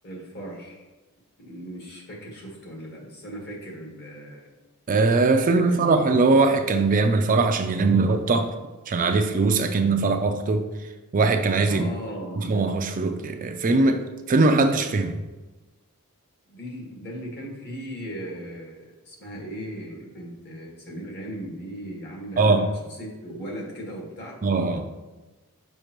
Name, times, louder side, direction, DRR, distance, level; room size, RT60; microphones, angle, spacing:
voice 1, 0.0-0.9 1.4-4.5 5.4-5.9 11.7-12.4 16.5-22.7 23.0-24.4, equal, 50° left, -2 dB, 1.6 m, -37 dB
voice 2, 4.9-8.5 8.9-10.6 11.1-11.9 12.4-15.2 22.4-22.6 24.4-24.9, right 3 dB, 35° right, 6 dB, 0.4 m, -21 dB
6.5 x 5.3 x 3.0 m, 1.1 s
head